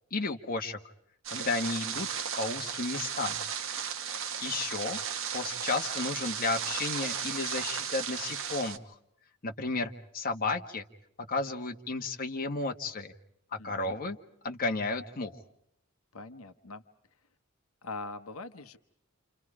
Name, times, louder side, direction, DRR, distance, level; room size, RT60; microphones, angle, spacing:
voice 1, 0.1-0.8 1.3-2.1 2.4-3.4 4.4-5.0 5.3-8.9 9.4-10.8 11.2-13.1 13.5-14.2 14.4-15.4, left 3 dB, 40° left, 4 dB, 1.3 m, -33 dB
sound 1, 1.2-8.8, right 7 dB, 65° right, 1.2 m, -35 dB
voice 2, 13.6-14.0 16.1-16.8 17.8-18.8, left 3 dB, 75° left, 8 dB, 1.0 m, -42 dB
29.0 x 28.0 x 4.9 m, 0.72 s
head